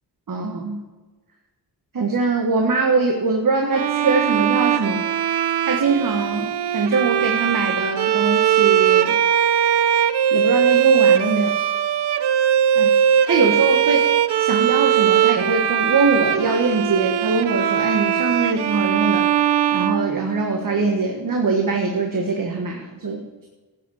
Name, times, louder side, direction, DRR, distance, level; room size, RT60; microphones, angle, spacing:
voice 1, 0.3-0.8 1.9-5.1 5.7-9.2 10.3-11.5 12.7-13.0 13.3-14.1 14.4-19.3 19.7-23.5, right 4 dB, 55° right, 2 dB, 1.5 m, -22 dB
Bowed string instrument, 3.7-20.7, right 9 dB, 85° right, 0.7 m, -20 dB
13.0 x 8.8 x 6.4 m, 1.3 s
wide cardioid pair, 100°, 39 cm